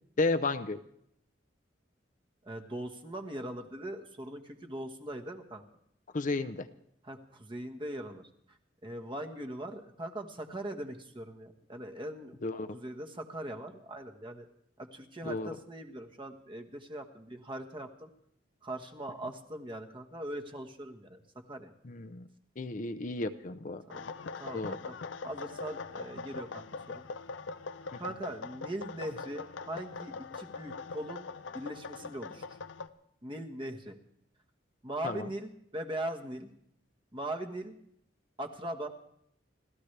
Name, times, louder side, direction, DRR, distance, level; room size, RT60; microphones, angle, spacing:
voice 1, 0.2-0.8 6.1-6.7 12.4-12.8 15.2-15.5 21.8-22.2 22.6-23.8 24.5-24.8 35.0-35.3, left 3 dB, 45° left, 9 dB, 0.7 m, -32 dB
voice 2, 2.4-5.6 7.0-8.2 8.5-8.6 8.8-12.4 12.7-14.5 14.8-18.1 18.6-21.2 21.5-21.7 23.9-24.1 24.4-25.0 25.2-27.0 28.0-31.3 31.5-32.4 33.2-34.0 34.8-36.5 37.1-37.8 38.4-38.9, right 1 dB, 25° right, 5 dB, 1.3 m, -40 dB
sound 1, 23.9-32.9, left 4 dB, 85° left, 0.6 m, -42 dB
30.0 x 13.5 x 3.3 m, 0.71 s
head